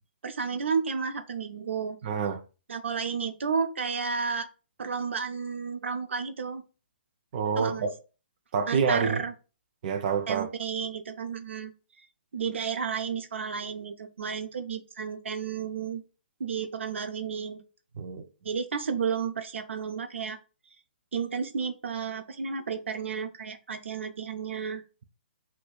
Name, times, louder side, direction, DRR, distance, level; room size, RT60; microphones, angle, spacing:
voice 1, 0.2-2.0 2.7-4.5 4.8-6.6 7.6-7.8 8.7-9.3 10.3-11.7 12.3-16.0 16.4-17.6 17.9-18.0 18.4-20.4 21.1-24.8, right 6 dB, 90° right, 0.5 m, -32 dB
voice 2, 2.0-2.4 7.3-7.9 8.5-9.2 9.8-10.5 18.0-18.2, right 6 dB, 40° right, 0.5 m, -27 dB
6.1 x 2.2 x 2.3 m
hypercardioid pair, 160°, 6 cm